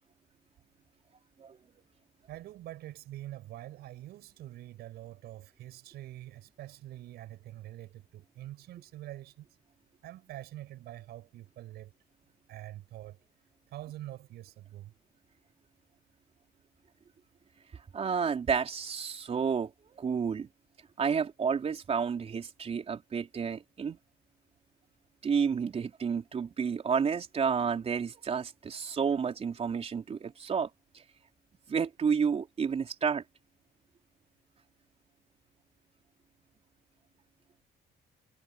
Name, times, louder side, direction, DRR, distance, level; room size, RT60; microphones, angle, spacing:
voice 1, 2.3-9.5 10.0-11.9 12.5-13.2 13.7-14.9, right 14 dB, 75° right, 6.1 m, -45 dB
voice 2, 17.9-19.7 20.0-20.5 21.0-24.0 25.2-31.0 31.7-33.2, right 6 dB, 35° right, 4.1 m, -30 dB
cardioid pair, 110°, 17 cm